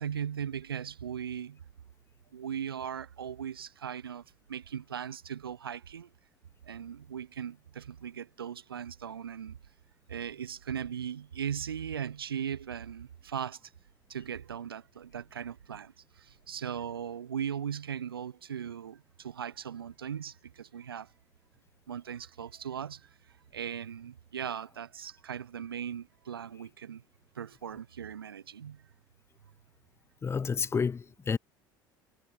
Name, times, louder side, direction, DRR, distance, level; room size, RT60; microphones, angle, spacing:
voice 1, 0.0-1.6 2.3-6.1 6.7-9.6 10.1-13.6 14.1-21.1 21.9-23.1 23.5-27.0 27.4-28.8, right 8 dB, 80° right, 0.7 m, -38 dB
voice 2, 30.2-31.4, left 5 dB, 20° left, 0.6 m, -30 dB
figure-of-eight pair, 65°, 12 cm